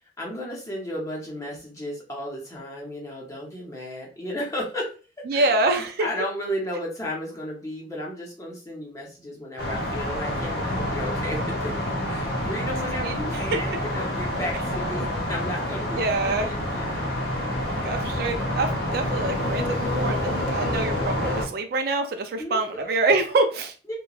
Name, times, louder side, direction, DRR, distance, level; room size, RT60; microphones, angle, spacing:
voice 1, 0.2-4.9 5.3-5.5 6.0-11.7 12.1-17.1 22.4-22.9 23.9-24.0, equal, 15° left, -2 dB, 0.7 m, -34 dB
voice 2, 5.3-6.1 13.0-13.1 13.5-13.6 16.0-16.5 17.8-23.7, right 2 dB, 55° right, 6 dB, 0.3 m, -25 dB
sound 1, 9.6-21.5, left 1 dB, 60° left, 0.7 m, -28 dB
2.9 x 2.2 x 2.4 m, 0.36 s
head